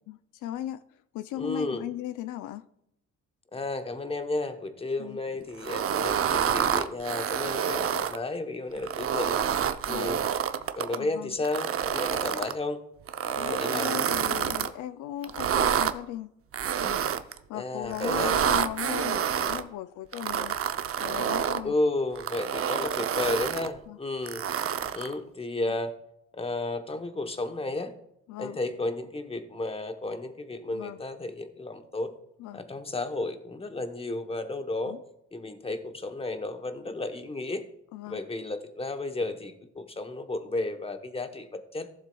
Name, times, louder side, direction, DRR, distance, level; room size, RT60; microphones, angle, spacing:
voice 1, 0.1-0.8 1.1-2.6 5.0-5.2 9.9-10.1 11.0-11.4 13.3-16.3 16.8-17.0 17.5-20.5 21.0-21.7 23.9-24.0 25.6-25.7 28.3-28.6 30.7-31.0 32.4-32.6 34.9-35.0 37.9-38.2, left 13 dB, 80° left, 0.5 m, -37 dB
voice 2, 1.4-1.8 3.5-9.4 9.9-10.2 10.8-12.8 13.4-14.1 17.5-18.4 21.6-24.4 24.9-25.9 26.3-27.9 28.4-32.1 32.5-34.9 35.3-37.6 38.1-41.9, left 2 dB, 20° left, 1.0 m, -33 dB
creaky-leather, 5.6-8.2 8.8-11.0 11.4-12.5 13.1-14.7 15.2-15.9 16.5-17.4 17.9-19.6 20.1-21.6 22.1-23.7 24.3-25.1, right 8 dB, 50° right, 0.6 m, -28 dB
15.0 x 7.2 x 2.3 m
cardioid pair, 90°, 30 cm